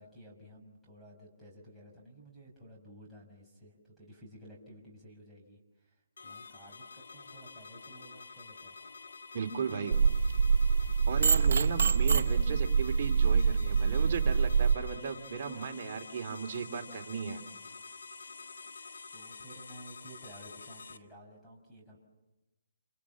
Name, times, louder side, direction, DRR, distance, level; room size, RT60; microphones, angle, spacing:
voice 1, 0.0-8.8 19.1-22.0, equal, ahead, -4 dB, 6.1 m, -54 dB
sound 1, 6.2-21.0, left 4 dB, 85° left, 1.8 m, -48 dB
voice 2, 9.3-10.0 11.1-17.4, right 6 dB, 45° right, 3 dB, 2.9 m, -36 dB
sound 2, 9.9-14.7, right 5 dB, 65° right, 0.9 m, -25 dB
28.5 x 27.5 x 7.3 m, 1.0 s
hypercardioid pair, 155°, 0 cm